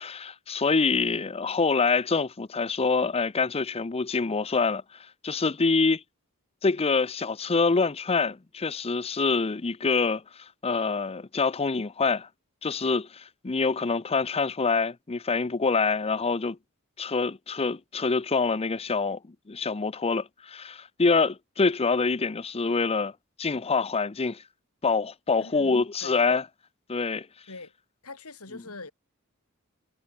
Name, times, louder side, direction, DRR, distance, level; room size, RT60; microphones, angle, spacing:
voice 1, 0.0-4.8 5.2-6.0 6.6-10.2 10.6-12.3 12.6-16.6 17.0-23.1 23.4-24.4 24.8-26.4 26.9-27.3, left 4 dB, 25° left, 0.6 m, -26 dB
voice 2, 25.4-26.2 27.5-27.7 28.0-28.9, left 3 dB, 80° left, 4.2 m, -43 dB
head